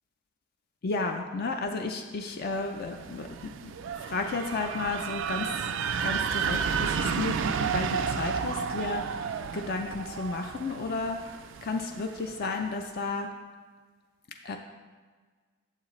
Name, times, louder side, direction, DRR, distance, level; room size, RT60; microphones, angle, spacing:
voice 1, 0.8-3.5 4.0-5.7 6.0-9.0 9.5-11.2 11.6-13.3 14.4-14.6, left 3 dB, 45° left, 4 dB, 0.4 m, -33 dB
sound 1, 2.6-12.4, right 6 dB, 55° right, 0.3 m, -32 dB
8.8 x 7.4 x 3.1 m, 1.5 s
head